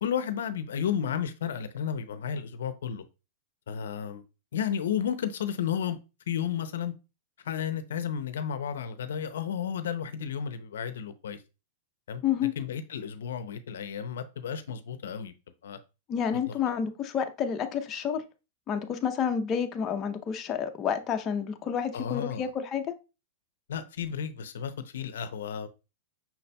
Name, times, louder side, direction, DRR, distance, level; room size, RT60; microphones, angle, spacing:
voice 1, 0.0-3.0 3.7-4.2 4.5-6.0 6.3-6.9 7.4-11.4 12.1-12.2 12.6-15.3 15.6-15.8 16.5-16.6 21.9-22.5 23.7-25.7, left 8 dB, 85° left, 0.5 m, -32 dB
voice 2, 16.1-18.2 18.7-22.9, left 8 dB, 25° left, 0.6 m, -29 dB
5.8 x 4.0 x 2.2 m
supercardioid pair, 140°, 0 cm